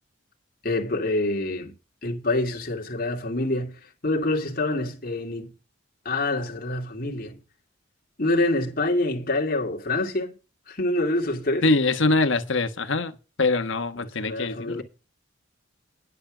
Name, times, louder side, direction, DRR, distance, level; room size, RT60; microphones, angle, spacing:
voice 1, 0.6-1.7 2.0-5.5 6.0-7.4 8.2-10.3 10.7-11.7 14.0-14.8, left 2 dB, 45° left, 2.4 m, -26 dB
voice 2, 11.6-14.8, left 3 dB, 70° left, 1.2 m, -23 dB
10.5 x 8.3 x 5.0 m
head